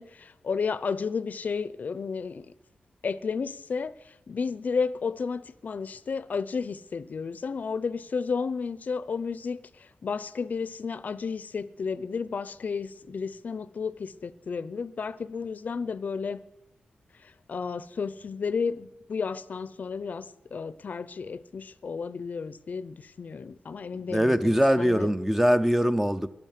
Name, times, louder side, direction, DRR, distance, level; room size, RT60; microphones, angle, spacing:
voice 1, 0.0-2.5 3.0-16.4 17.2-25.1, left 5 dB, 60° left, 0.6 m, -32 dB
voice 2, 24.1-26.3, equal, 10° right, 0.7 m, -22 dB
12.5 x 11.5 x 9.2 m
wide cardioid pair, 90°, 3 cm